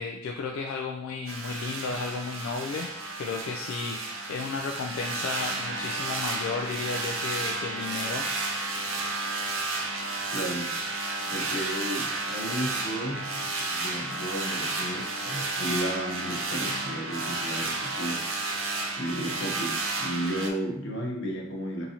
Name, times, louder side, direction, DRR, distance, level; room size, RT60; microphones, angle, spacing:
voice 1, 0.0-2.9 3.2-8.3, left 4 dB, 80° left, 1 dB, 0.3 m, -33 dB
sound 1, 1.3-20.5, right 3 dB, 80° right, 0.5 m, -32 dB
voice 2, 10.3-10.7 11.2-18.3 19.0-21.9, equal, 65° left, 0 dB, 0.7 m, -33 dB
3.7 x 2.8 x 2.7 m, 0.83 s
head